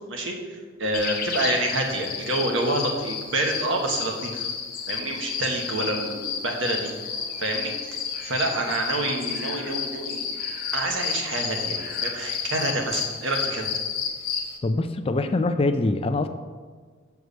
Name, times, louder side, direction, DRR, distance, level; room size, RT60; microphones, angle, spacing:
voice 1, 0.1-4.5 4.9-6.9 7.4-10.4 10.7-13.7, right 2 dB, 70° right, 1 dB, 1.3 m, -28 dB
sound 1, 0.9-14.6, left 6 dB, 45° left, 0.9 m, -31 dB
voice 2, 14.6-16.3, left 2 dB, 30° left, 8 dB, 0.4 m, -24 dB
6.7 x 4.7 x 6.7 m, 1.5 s
head